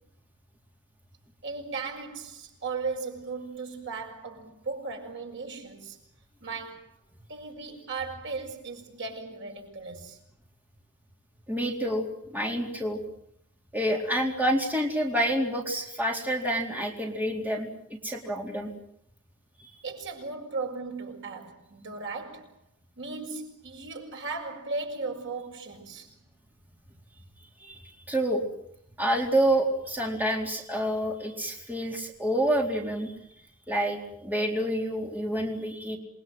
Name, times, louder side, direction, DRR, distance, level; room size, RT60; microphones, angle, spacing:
voice 1, 1.4-6.0 6.4-7.0 7.3-10.2 19.8-22.5 23.0-26.1, right 4 dB, 55° right, 6.6 m, -36 dB
voice 2, 11.5-12.1 12.3-13.0 13.7-18.7 19.6-19.7 27.6-27.8 28.1-28.4 29.0-33.1 33.7-36.0, right 1 dB, 10° right, 4.1 m, -28 dB
28.5 x 23.0 x 7.8 m
head